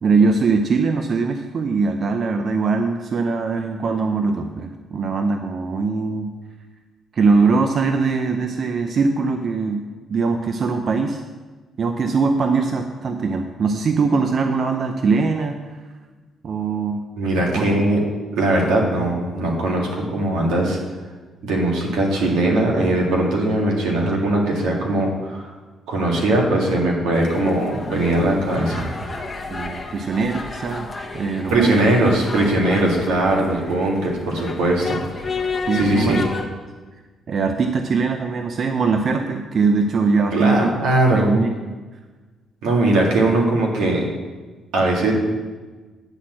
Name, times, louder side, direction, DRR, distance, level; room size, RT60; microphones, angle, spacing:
voice 1, 0.0-6.3 7.1-9.8 10.1-11.2 11.8-15.6 16.4-17.0 17.5-17.6 29.5-31.8 35.7-36.2 37.3-40.7 41.1-41.5, right 4 dB, 50° right, 6 dB, 0.6 m, -21 dB
voice 2, 17.2-18.0 18.4-20.8 21.4-25.5 25.9-28.9 31.5-35.4 35.7-36.3 40.3-41.4 42.6-44.0 44.7-45.1, right 1 dB, 90° right, -1 dB, 1.9 m, -20 dB
sound 1, 27.1-36.5, left 3 dB, 20° left, 1.1 m, -32 dB
9.8 x 4.2 x 7.6 m, 1.3 s
cardioid pair, 90°, 0 cm